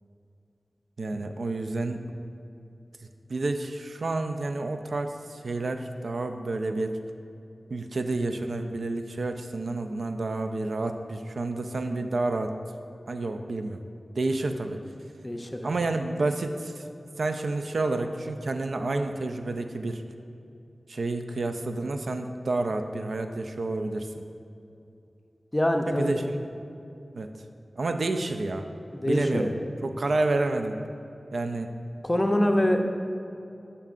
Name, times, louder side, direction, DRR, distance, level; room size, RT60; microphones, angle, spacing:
voice 1, 1.0-2.2 3.3-6.9 7.7-12.6 13.1-13.8 14.2-14.8 15.6-16.8 17.2-20.0 20.9-24.2 26.0-26.4 27.1-27.3 27.8-28.7 29.1-29.5 29.8-30.8 31.3-31.7, right 2 dB, 85° right, 7 dB, 0.3 m, -29 dB
voice 2, 15.2-15.7 25.5-26.2 28.9-29.5 32.0-32.9, left 1 dB, 20° left, 4 dB, 0.5 m, -25 dB
10.5 x 5.5 x 2.5 m, 2.7 s
wide cardioid pair, 80°, 0 cm